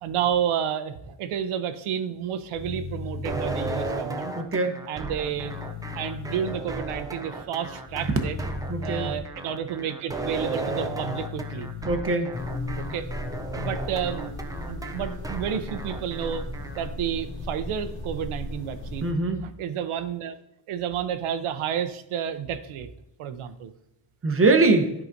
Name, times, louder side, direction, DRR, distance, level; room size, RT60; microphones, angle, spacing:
voice 1, 0.0-4.3 4.9-5.5 5.9-8.4 8.8-11.7 12.9-13.1 13.5-16.5 16.8-20.4 20.7-22.9 23.2-23.7, right 9 dB, 80° right, 10 dB, 0.8 m, -30 dB
sound 1, 2.5-3.8 5.2-6.5 7.9-9.2 10.5-11.8, left 3 dB, 60° left, 1.9 m, -36 dB
sound 2, 3.2-16.9, right 2 dB, 10° right, 0.4 m, -35 dB
voice 2, 4.4-4.9 8.7-9.1 11.8-12.3 19.0-19.5 24.2-24.9, right 3 dB, 25° right, 6 dB, 0.8 m, -22 dB
sound 3, 12.3-19.1, left 2 dB, 75° left, 2.6 m, -35 dB
11.0 x 4.8 x 2.6 m, 0.80 s
cardioid pair, 135°, 49 cm